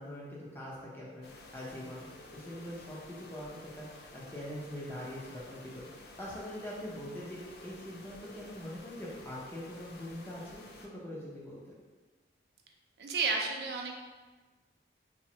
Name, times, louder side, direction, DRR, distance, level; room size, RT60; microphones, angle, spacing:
voice 1, 0.0-2.1 2.3-3.9 4.1-11.7, equal, 10° left, -6 dB, 0.5 m, -43 dB
sound 1, 1.2-10.9, left 2 dB, 60° left, 0.3 m, -52 dB
voice 2, 13.0-13.9, right 4 dB, 65° right, 2 dB, 0.4 m, -32 dB
3.3 x 2.0 x 2.8 m, 1.3 s
head